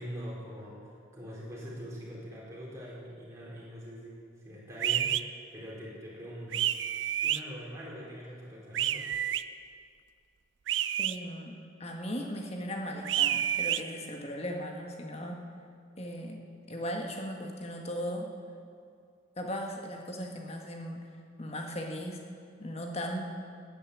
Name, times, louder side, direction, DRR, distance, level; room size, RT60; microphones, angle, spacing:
voice 1, 0.0-6.6 7.2-9.1, equal, 15° right, -6 dB, 4.4 m, -43 dB
sound 1, 4.8-5.2 6.5-7.4 8.7-9.4 10.7-11.2 13.0-13.8, right 11 dB, 80° right, 0.5 m, -29 dB
voice 2, 11.0-15.4 16.0-18.3 19.4-21.1 21.4-22.3 22.6-23.2, equal, 35° left, 2 dB, 1.7 m, -37 dB
13.5 x 9.8 x 8.6 m, 2.2 s
head